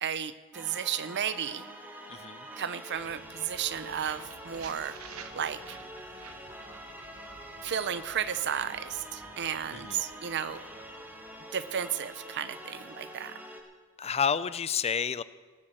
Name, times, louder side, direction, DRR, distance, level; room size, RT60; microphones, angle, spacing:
voice 1, 0.0-1.7 2.6-5.0 5.3-5.8 7.6-10.6 11.5-13.3, right 8 dB, 55° right, 15 dB, 0.6 m, -33 dB
sound 1, 0.5-13.6, equal, 10° right, 1.9 m, -46 dB
voice 2, 2.1-2.5 9.7-10.0 14.0-15.2, left 7 dB, 30° left, 17 dB, 0.4 m, -30 dB
sound 2, 2.9-12.8, right 5 dB, 75° right, 1.1 m, -52 dB
18.0 x 7.8 x 7.8 m, 1.4 s
head